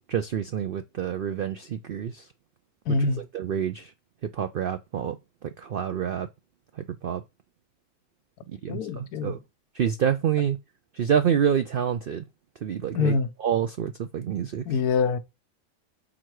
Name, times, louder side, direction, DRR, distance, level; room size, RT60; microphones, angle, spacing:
voice 1, 0.0-2.3 2.9-3.0 3.3-3.9 4.3-5.2 5.4-6.3 6.8-7.2 8.5-9.4 9.7-10.6 10.9-12.2 12.6-13.1 13.4-14.6, right 8 dB, 90° right, 0.4 m, -27 dB
voice 2, 2.9-3.2 8.7-9.4 12.9-13.3 14.7-15.2, left 4 dB, 85° left, 1.3 m, -24 dB
6.1 x 4.5 x 4.7 m
omnidirectional pair, 1.6 m